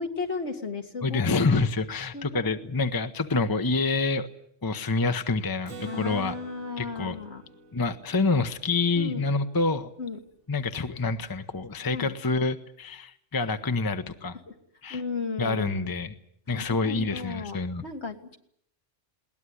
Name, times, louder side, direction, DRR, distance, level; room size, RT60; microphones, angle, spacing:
voice 1, 0.0-1.3 2.1-2.5 5.9-7.4 9.0-9.2 10.0-10.2 11.9-12.1 14.5-14.6 14.9-15.9 16.5-18.4, left 4 dB, 65° left, 4 dB, 2.3 m, -35 dB
voice 2, 1.0-4.3 4.6-6.3 6.8-7.1 7.7-9.9 10.5-14.4 14.8-15.0 15.4-16.1 16.5-17.8, left 3 dB, 20° left, 9 dB, 0.9 m, -27 dB
Acoustic guitar, 5.7-9.3, right 3 dB, 90° right, 3.3 m, -46 dB
21.0 x 18.5 x 9.8 m, 0.71 s
omnidirectional pair, 1.3 m